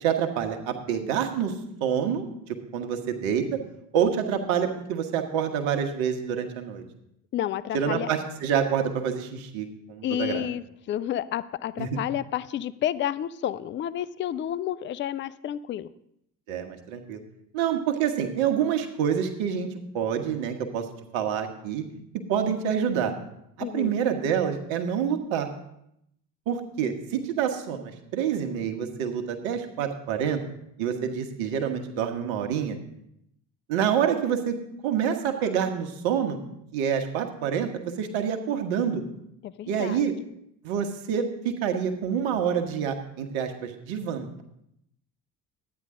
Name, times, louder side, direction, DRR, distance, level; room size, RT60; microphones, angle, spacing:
voice 1, 0.0-1.5 1.8-2.2 2.7-3.6 3.9-6.8 7.7-10.4 11.8-11.9 16.5-17.2 17.5-19.7 19.9-20.8 21.1-21.8 22.3-23.1 23.6-25.5 26.5-30.4 30.8-32.8 33.7-34.6 34.8-36.4 36.7-39.0 39.7-40.1 40.6-44.4, right 8 dB, 65° right, 6 dB, 1.4 m, -27 dB
voice 2, 7.3-8.1 10.0-15.9 23.6-24.0 26.8-26.9 39.4-40.1, left 11 dB, 25° left, 17 dB, 0.4 m, -30 dB
12.0 x 9.7 x 3.8 m, 0.78 s
hypercardioid pair, 55°, 49 cm